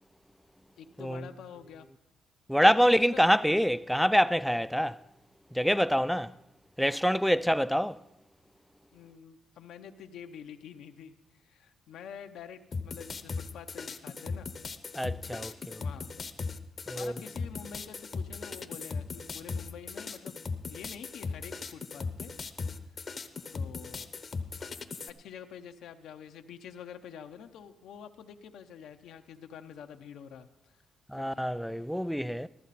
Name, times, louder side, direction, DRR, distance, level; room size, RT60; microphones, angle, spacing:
voice 1, 0.8-1.9 2.8-3.2 7.2-7.3 8.9-11.1 11.4-14.5 15.8-16.3 16.9-20.4 20.6-22.3 23.5-24.1 25.1-30.7 31.1-31.5, left 8 dB, 75° left, 0.8 m, -47 dB
voice 2, 2.5-5.0 5.5-6.3 6.8-8.0 14.9-15.8 16.9-17.1 31.1-32.5, equal, ahead, 0.4 m, -26 dB
sound 1, 12.7-25.1, left 4 dB, 35° left, 0.9 m, -38 dB
14.5 x 13.5 x 4.2 m
cardioid pair, 90°, 0 cm